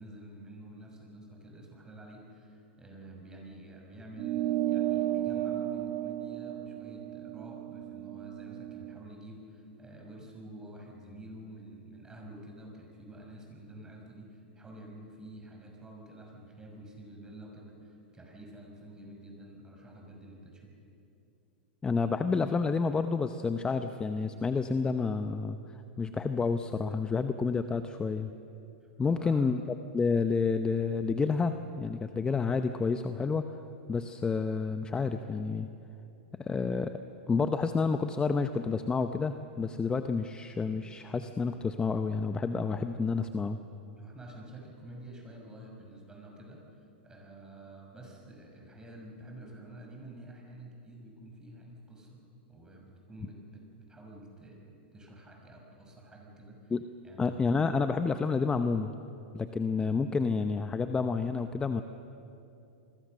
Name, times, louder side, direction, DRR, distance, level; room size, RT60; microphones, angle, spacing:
voice 1, 0.0-20.7 28.8-29.4 44.0-46.6 47.0-52.2 52.5-56.7 57.0-57.3, right 1 dB, 10° right, 0 dB, 6.2 m, -49 dB
sound 1, 4.2-9.0, right 13 dB, 35° right, 0.9 m, -33 dB
voice 2, 21.8-25.6 26.0-28.3 29.0-29.6 29.9-33.5 33.9-35.7 36.4-37.0 37.3-43.6 56.7-56.8 57.2-58.9 59.3-61.8, left 4 dB, 15° left, 9 dB, 0.8 m, -29 dB
28.5 x 21.5 x 6.6 m, 2.8 s
hypercardioid pair, 120°, 6 cm